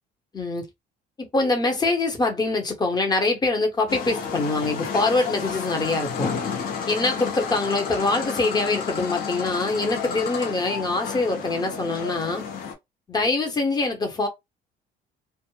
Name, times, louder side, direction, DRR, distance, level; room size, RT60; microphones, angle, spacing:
voice 1, 0.3-0.7 1.2-6.3 6.9-12.4 13.1-14.3, left 3 dB, 25° left, 0.9 m, -24 dB
sound 1, 3.9-12.7, left 6 dB, 60° left, 0.9 m, -31 dB
2.2 x 2.0 x 3.1 m
cardioid pair, 110°, 17 cm